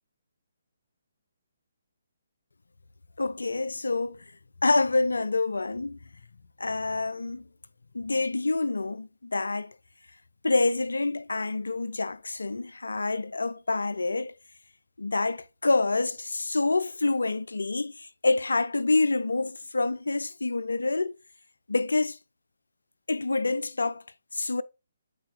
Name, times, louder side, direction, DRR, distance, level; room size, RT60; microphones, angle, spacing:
voice 1, 3.2-4.2 4.6-6.0 6.6-7.4 7.9-9.7 10.4-14.3 15.0-21.1 21.7-22.2 23.1-24.0 24.3-24.6, left 3 dB, 75° left, 0.5 m, -27 dB
8.4 x 4.5 x 3.2 m
figure-of-eight pair, 140°, 0 cm